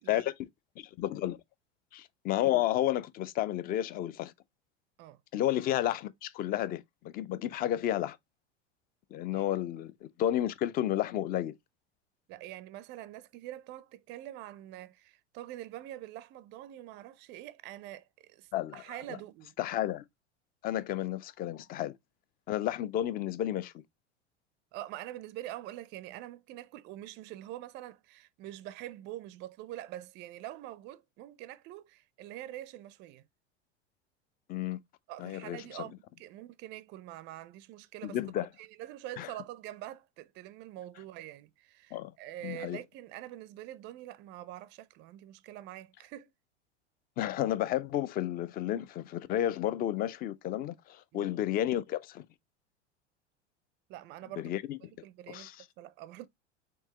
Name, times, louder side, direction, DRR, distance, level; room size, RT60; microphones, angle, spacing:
voice 1, 0.1-0.5 0.8-1.4 1.9-4.3 5.3-8.2 9.1-11.5 18.5-18.8 19.1-19.2 19.6-20.0 20.6-21.9 22.5-23.8 34.5-34.8 35.2-35.8 38.0-38.5 39.2-39.3 41.9-42.1 42.4-42.8 47.2-52.3 54.4-54.8 55.3-55.6, left 12 dB, 25° left, 0.4 m, -32 dB
voice 2, 12.3-19.6 24.7-33.3 35.1-38.2 38.6-46.3 51.1-51.3 53.9-54.5 54.9-56.3, right 14 dB, 35° right, 0.4 m, -45 dB
4.5 x 3.7 x 2.8 m
figure-of-eight pair, 85°, 35 cm